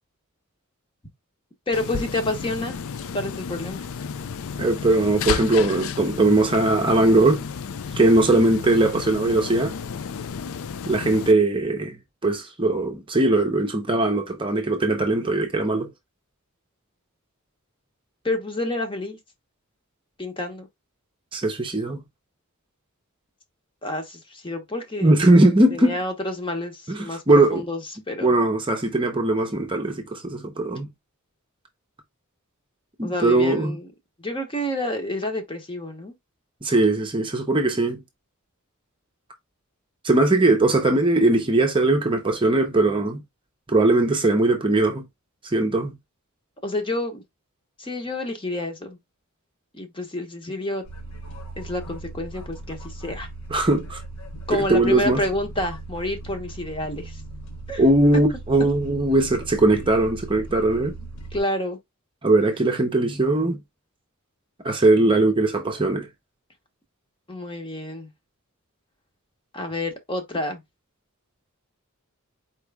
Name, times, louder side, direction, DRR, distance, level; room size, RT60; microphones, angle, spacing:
sound 1, 1.7-11.3, left 6 dB, 65° left, 0.4 m, -32 dB
voice 1, 1.7-2.8 3.1-3.9 18.2-19.2 20.2-20.7 23.8-25.1 25.7-27.2 27.5-27.8 28.1-28.4 33.0-33.9 34.2-36.1 46.6-47.2 47.8-49.0 49.7-50.8 51.6-53.3 54.5-57.2 57.7-57.8 61.3-61.8 67.3-68.1 69.5-70.6, left 1 dB, 25° left, 1.1 m, -29 dB
voice 2, 4.6-7.5 7.9-9.7 10.9-15.9 21.3-22.0 25.0-26.0 26.9-27.6 28.2-30.9 33.0-33.8 36.6-38.0 40.0-43.2 43.7-45.0 45.4-46.0 53.5-54.0 54.5-55.2 57.8-61.0 62.2-63.6 64.6-66.1, right 2 dB, 25° right, 0.7 m, -20 dB
sound 2, 50.8-61.4, right 2 dB, 85° left, 1.3 m, -38 dB
4.5 x 3.1 x 3.4 m
head